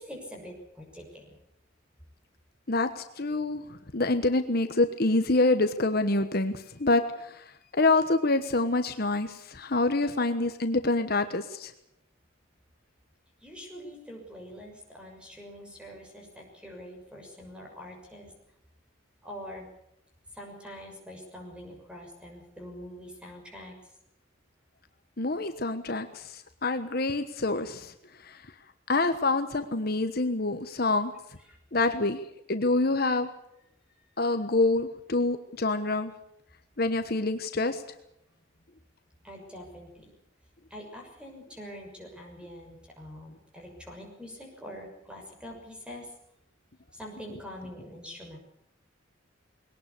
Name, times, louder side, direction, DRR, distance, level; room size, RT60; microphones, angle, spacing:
voice 1, 0.0-1.3 13.4-18.3 19.2-19.7 20.3-23.7 34.0-34.1 39.2-40.1 40.7-46.1 46.9-48.4, equal, 5° right, 1 dB, 6.5 m, -44 dB
voice 2, 2.7-11.7 25.2-27.9 28.2-28.4 28.9-31.1 31.7-32.2 32.5-33.3 34.2-36.1 36.8-37.8, left 2 dB, 50° left, 8 dB, 1.2 m, -26 dB
21.5 x 18.5 x 8.4 m, 0.80 s
head